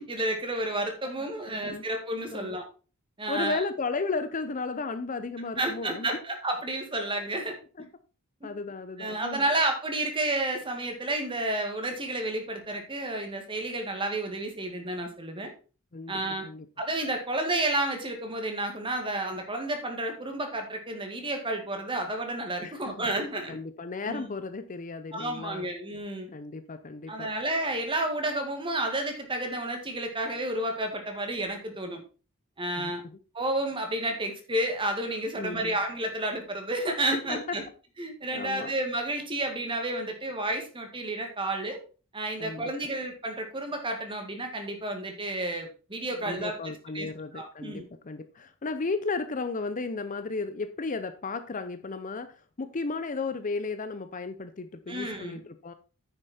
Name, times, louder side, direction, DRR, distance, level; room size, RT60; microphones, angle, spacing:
voice 1, 0.0-2.6 3.2-3.6 5.6-7.6 8.4-8.5 9.0-15.5 16.1-16.5 16.8-23.6 24.1-24.3 25.1-26.3 27.1-32.0 32.6-33.0 33.3-37.6 38.0-41.8 42.1-46.6 46.9-47.1 47.3-47.8 54.9-55.4, right 1 dB, 25° right, 2.0 m, -31 dB
voice 2, 1.0-1.9 2.3-2.6 3.3-6.1 7.8-7.9 8.4-9.4 15.9-16.7 22.6-23.0 23.5-25.7 26.3-27.3 32.8-33.2 35.4-35.8 37.1-37.6 38.3-38.7 42.4-42.7 46.2-55.7, left 3 dB, 35° left, 0.6 m, -34 dB
9.4 x 6.6 x 4.3 m
head